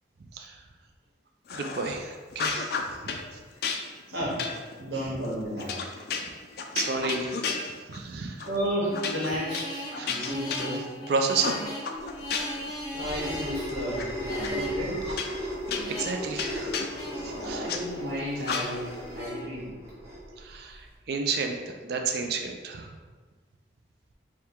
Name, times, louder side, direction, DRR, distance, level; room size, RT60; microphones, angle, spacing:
sound 1, 1.5-2.0 2.3-3.2 3.6-8.1 8.4-8.6 8.9-11.0 11.4-12.7 13.1-14.0 14.4-14.5 15.1-17.8 18.4-19.0, left 5 dB, 55° left, 0.3 m, -33 dB
voice 1, 1.5-2.8 3.3-3.4 6.7-7.4 7.9-8.5 9.9-10.4 11.1-11.7 15.1-15.5 15.9-16.8 17.2-17.8 20.4-21.6 21.8-22.9, right 4 dB, 55° right, 3 dB, 0.3 m, -31 dB
voice 2, 4.1-4.5 4.8-5.8 8.4-10.8 12.9-15.0 17.3-19.7, equal, 85° right, -8 dB, 1.2 m, -32 dB
sound 2, 8.9-19.4, equal, 20° left, 0.7 m, -39 dB
sound 3, 12.1-20.9, equal, 15° right, 0.6 m, -36 dB
3.6 x 2.2 x 4.4 m, 1.4 s
head